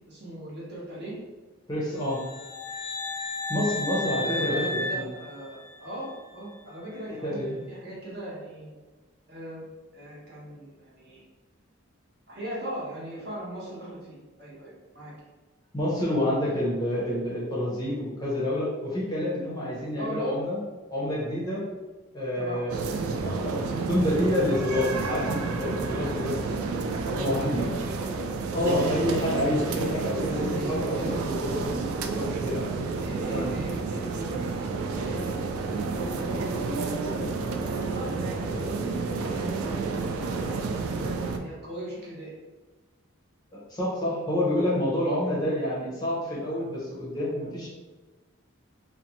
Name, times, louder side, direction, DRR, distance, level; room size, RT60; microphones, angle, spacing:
voice 1, 0.1-1.1 4.2-8.7 9.3-9.6 9.9-11.2 12.3-15.1 20.0-20.3 22.3-23.2 27.0-28.3 30.4-31.2 31.5-31.8 32.9-38.1 38.3-42.3, right 1 dB, 50° right, -7 dB, 0.9 m, -39 dB
voice 2, 1.7-2.2 3.5-5.0 7.1-7.6 15.7-20.6 20.9-21.6 22.1-22.9 23.2-27.7 28.5-31.7 32.0-32.6 33.3-33.5 43.7-47.7, left 1 dB, 20° left, -7 dB, 0.6 m, -28 dB
sound 1, 2.0-6.0, left 2 dB, 75° left, 0.3 m, -33 dB
sound 2, 22.7-41.4, right 4 dB, 85° right, 0.3 m, -30 dB
2.6 x 2.1 x 2.8 m, 1.2 s
head